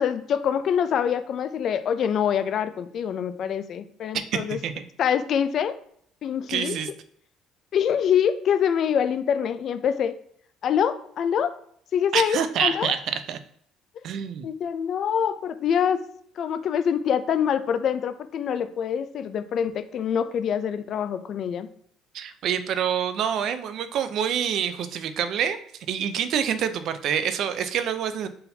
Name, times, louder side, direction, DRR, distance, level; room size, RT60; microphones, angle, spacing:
voice 1, 0.0-4.6 5.0-5.8 6.2-6.8 7.7-10.1 10.6-11.5 11.9-12.9 14.4-16.0 16.4-21.7, left 8 dB, 55° left, 11 dB, 0.4 m, -25 dB
voice 2, 4.5-4.8 6.5-6.9 12.1-13.4 14.0-14.5 22.1-25.6 25.9-28.3, right 8 dB, 60° right, 11 dB, 0.5 m, -26 dB
4.1 x 3.8 x 2.7 m, 0.64 s
cardioid pair, 105°, 0 cm